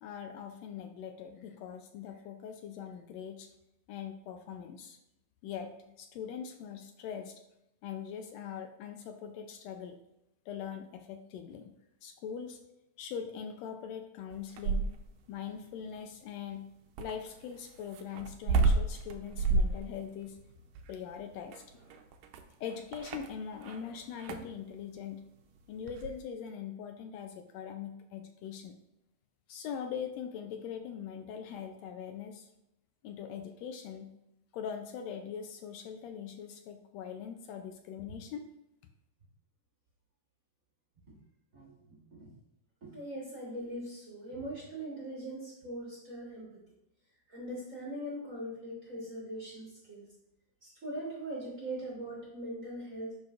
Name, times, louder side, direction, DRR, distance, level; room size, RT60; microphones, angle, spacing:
voice 1, 0.0-3.5 3.9-5.0 5.4-7.4 7.8-10.0 10.5-11.7 12.0-12.6 13.0-14.9 15.3-16.7 17.0-20.4 20.9-22.0 22.6-25.2 25.7-28.8 29.5-32.5 33.0-34.1 34.5-38.4, left 8 dB, 80° left, 6 dB, 1.6 m, -42 dB
sound 1, 14.3-15.2 17.0-23.8 24.1-24.6 25.9-26.2, right 3 dB, 75° right, 1.6 m, -31 dB
voice 2, 41.5-42.3 42.8-46.5 47.3-50.1 50.6-53.1, right 1 dB, 45° right, -4 dB, 1.0 m, -41 dB
10.5 x 4.3 x 2.4 m, 0.85 s
omnidirectional pair, 3.3 m